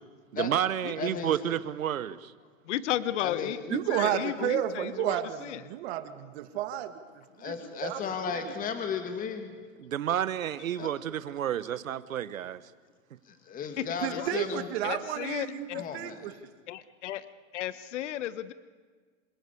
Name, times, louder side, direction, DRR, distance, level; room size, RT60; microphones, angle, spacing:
voice 1, 0.3-2.3 9.8-12.6, right 10 dB, 90° right, 1.3 m, -30 dB
voice 2, 1.0-1.4 3.2-3.6 7.4-9.6 10.8-10.9 13.2-14.7 15.7-16.4, left 6 dB, 20° left, 2.5 m, -35 dB
voice 3, 2.7-5.2 5.5-5.6 14.1-14.3 14.8-15.8 16.7-17.2 17.5-18.5, left 12 dB, 60° left, 1.3 m, -33 dB
voice 4, 3.7-7.0 7.4-7.6 7.8-8.0 8.4-8.5 14.0-16.5, right 11 dB, 50° right, 2.0 m, -32 dB
27.0 x 20.5 x 8.5 m
hypercardioid pair, 140°, 39 cm